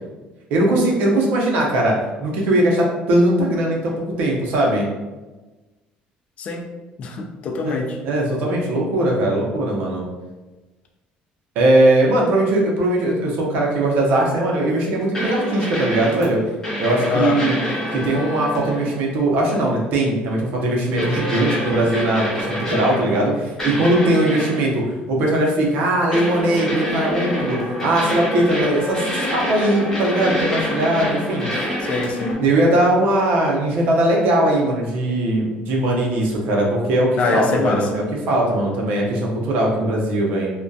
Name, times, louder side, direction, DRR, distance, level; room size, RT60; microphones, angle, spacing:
voice 1, 0.5-1.9 2.2-3.9 4.2-4.9 7.6-10.0 11.6-16.4 16.8-17.5 17.9-31.5 32.4-40.5, right 1 dB, 70° right, -1 dB, 0.6 m, -20 dB
voice 2, 7.0-8.0 17.1-17.4 22.7-22.8 31.8-32.4 37.2-38.0, left 4 dB, 40° left, 2 dB, 0.3 m, -24 dB
sound 1, 15.1-16.2 16.6-19.0 19.5-19.7 21.0-23.3 23.6-24.7 26.1-32.3, equal, 15° left, 0.8 m, -26 dB
2.2 x 2.2 x 2.6 m, 1.2 s
cardioid pair, 140°, 3 cm